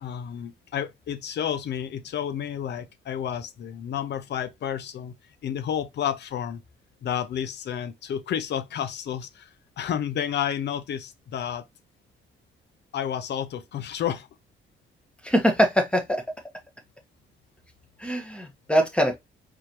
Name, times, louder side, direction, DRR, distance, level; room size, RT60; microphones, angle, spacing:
voice 1, 0.0-5.2 5.4-6.6 7.0-11.6 12.9-14.3, left 9 dB, 60° left, 0.7 m, -31 dB
voice 2, 15.2-16.2 18.0-19.2, equal, 5° left, 1.3 m, -22 dB
4.6 x 3.4 x 3.0 m
cardioid pair, 90°, 20 cm